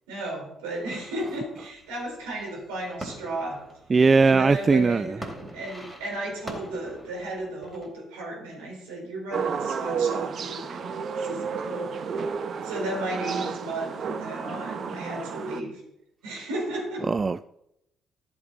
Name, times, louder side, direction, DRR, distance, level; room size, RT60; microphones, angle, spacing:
voice 1, 0.1-3.6 4.2-5.2 5.5-12.0 12.6-15.8 16.2-17.0, right 1 dB, 80° right, 4.6 m, -34 dB
sound 1, 0.8-7.9, right 1 dB, 15° right, 3.9 m, -44 dB
voice 2, 3.9-5.2 17.1-17.5, right 4 dB, 35° right, 0.3 m, -19 dB
sound 2, 9.3-15.6, right 6 dB, 50° right, 1.0 m, -31 dB
14.0 x 7.9 x 4.0 m
hypercardioid pair, 50°, 0 cm